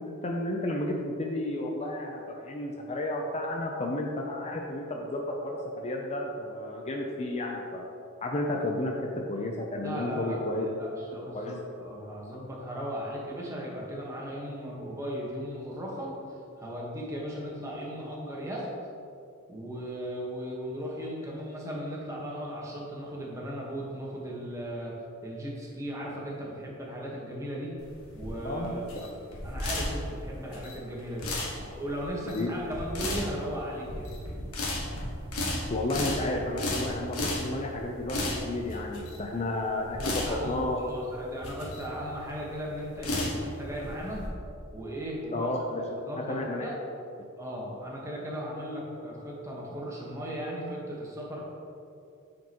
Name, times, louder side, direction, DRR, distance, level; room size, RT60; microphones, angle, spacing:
voice 1, 0.0-7.8 8.2-10.7 11.3-11.6 28.4-28.8 32.3-32.5 35.7-40.8 45.3-45.8 46.2-46.7, left 1 dB, 30° left, 0 dB, 0.5 m, -32 dB
voice 2, 9.8-10.4 10.8-16.1 16.6-18.7 19.5-24.9 25.2-27.7 28.1-29.1 29.4-31.3 31.6-34.1 40.1-44.2 44.7-45.5 45.8-46.7 47.4-51.4, equal, 15° right, -4 dB, 1.2 m, -37 dB
sound 1, 27.8-44.3, left 1 dB, 80° left, 1.4 m, -34 dB
9.0 x 5.2 x 2.9 m, 2.6 s
head